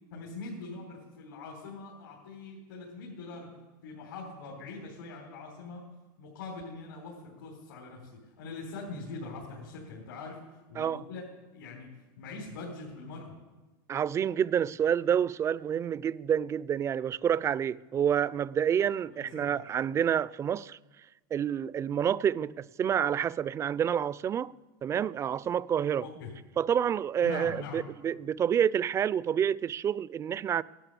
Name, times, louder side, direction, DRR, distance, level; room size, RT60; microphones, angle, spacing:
voice 1, 0.1-3.5 3.8-5.9 6.2-10.4 10.7-11.2 11.5-11.9 12.2-13.3 19.0-19.6 26.0-26.3 27.2-27.8, left 3 dB, 85° left, 4.1 m, -42 dB
voice 2, 13.9-20.8 21.3-24.6 24.8-26.1 26.6-30.6, right 8 dB, 25° right, 0.4 m, -28 dB
16.0 x 12.0 x 6.9 m
supercardioid pair, 120°, 11 cm